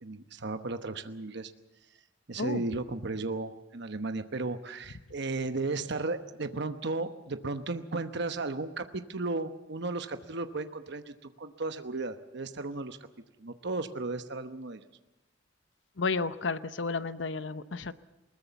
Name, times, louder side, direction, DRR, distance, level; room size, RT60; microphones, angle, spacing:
voice 1, 0.0-1.5 2.3-13.0 13.4-14.8, right 3 dB, 65° right, 9 dB, 1.0 m, -35 dB
voice 2, 16.0-17.9, left 4 dB, 75° left, 13 dB, 0.9 m, -32 dB
21.0 x 19.5 x 7.0 m, 1.0 s
head